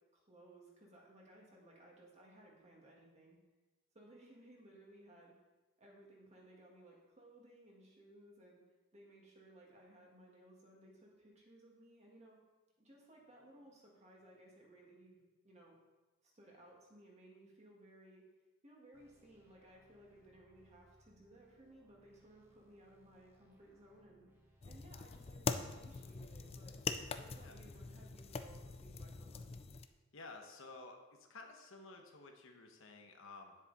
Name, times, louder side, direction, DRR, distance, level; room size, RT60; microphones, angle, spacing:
voice 1, 0.1-3.4 3.9-5.3 5.8-8.6 8.9-12.4 12.8-15.8 16.2-18.2 18.6-24.2 24.7-26.8 27.2-29.5, right 1 dB, 30° right, -2 dB, 2.0 m, -60 dB
sound 1, 18.9-28.6, equal, 10° right, 1.1 m, -70 dB
sound 2, 24.6-29.9, left 4 dB, 30° left, 0.4 m, -43 dB
voice 2, 30.1-33.6, left 3 dB, 65° left, 3 dB, 1.1 m, -53 dB
9.7 x 7.3 x 4.1 m, 1.2 s
head